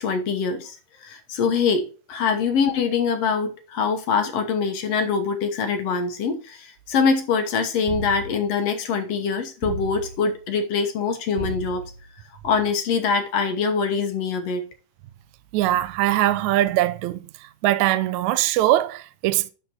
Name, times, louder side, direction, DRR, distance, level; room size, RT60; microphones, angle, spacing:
voice 1, 0.0-11.8 12.4-14.7, left 5 dB, 60° left, 1.9 m, -24 dB
sound 1, 7.9-8.6 9.6-10.4 11.4-12.1, right 4 dB, 60° right, 1.6 m, -34 dB
voice 2, 15.5-17.3 17.6-19.5, right 14 dB, 80° right, 1.7 m, -21 dB
11.5 x 4.3 x 4.4 m
omnidirectional pair, 3.8 m